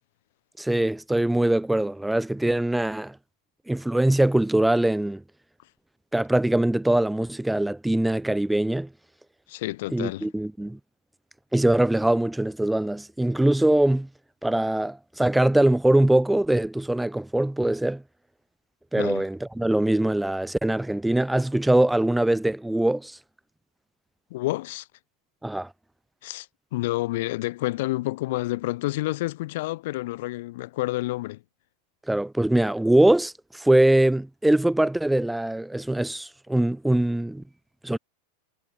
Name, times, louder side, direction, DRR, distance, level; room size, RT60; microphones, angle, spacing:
voice 1, 0.6-3.2 3.7-5.2 6.1-8.9 9.9-10.8 11.5-14.1 14.4-18.0 18.9-23.2 25.4-25.7 32.1-37.4 37.8-38.0, right 1 dB, 5° right, 0.8 m, -22 dB
voice 2, 9.5-10.3 19.0-19.2 24.3-24.9 26.2-26.5 26.7-31.4, left 18 dB, 50° left, 1.1 m, -29 dB
figure-of-eight pair, 90°, 0 cm